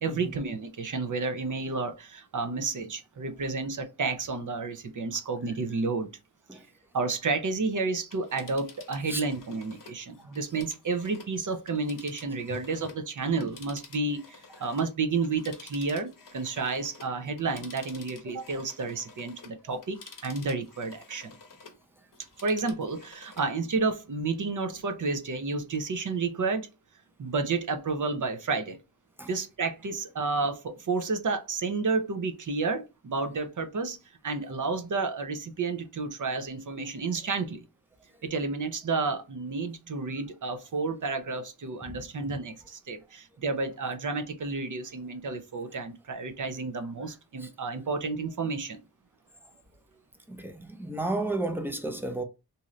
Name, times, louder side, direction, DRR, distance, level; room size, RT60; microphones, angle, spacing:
voice 1, 0.0-6.1 6.5-6.6 6.9-21.3 22.4-26.7 27.2-28.8 29.3-37.7 38.2-48.8, right 4 dB, 50° right, 0.6 m, -31 dB
Telephone, 8.0-13.1 13.4-21.8 22.1-23.5 23.9-24.0, left 4 dB, 55° left, 0.8 m, -51 dB
voice 2, 50.3-52.2, right 2 dB, 5° right, 0.5 m, -32 dB
2.7 x 2.5 x 3.1 m
wide cardioid pair, 70°, 39 cm